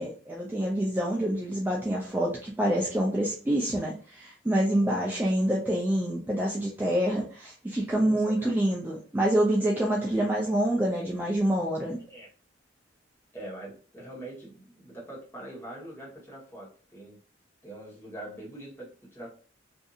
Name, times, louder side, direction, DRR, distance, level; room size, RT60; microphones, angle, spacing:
voice 1, 0.0-12.0, right 1 dB, 10° right, -2 dB, 0.3 m, -27 dB
voice 2, 4.8-5.1 7.9-8.5 12.1-12.3 13.3-17.2 17.6-19.3, right 1 dB, 10° left, -6 dB, 1.1 m, -43 dB
2.6 x 2.6 x 2.4 m, 0.40 s
head